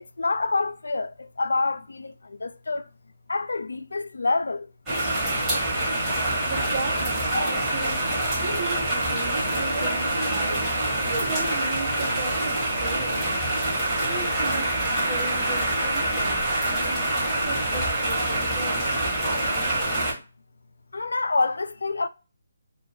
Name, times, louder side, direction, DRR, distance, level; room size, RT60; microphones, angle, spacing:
voice 1, 0.0-2.9 3.3-4.7 20.9-22.1, left 3 dB, 75° left, 0.3 m, -27 dB
sound 1, 4.9-20.1, right 1 dB, 10° right, 1.1 m, -25 dB
voice 2, 6.5-10.6 11.1-13.3 14.0-19.0, right 3 dB, 35° right, 0.8 m, -37 dB
2.2 x 2.1 x 3.2 m
figure-of-eight pair, 150°, 0 cm